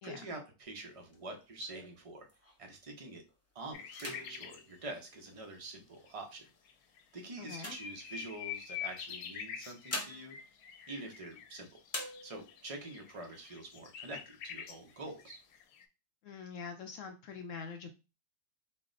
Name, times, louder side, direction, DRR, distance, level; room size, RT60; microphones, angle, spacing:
voice 1, 0.0-2.3 2.6-3.2 3.5-6.4 7.1-10.3 10.9-11.8 12.2-15.4, right 2 dB, 40° right, 3 dB, 0.5 m, -46 dB
sound 1, 0.6-2.8 3.3-3.5 3.9-5.8 6.5-8.6 9.5-11.5 11.8-12.7 13.2-13.3 13.5-14.2 14.7-15.6, left 1 dB, 15° left, 0.7 m, -46 dB
sound 2, 3.7-4.7 6.1-6.2 6.7-6.8 7.0-15.9, left 9 dB, 85° left, 1.1 m, -46 dB
voice 2, 7.4-7.8 16.2-17.9, left 5 dB, 70° left, 5 dB, 0.8 m, -44 dB
4.0 x 2.1 x 3.8 m, 0.29 s
omnidirectional pair, 1.6 m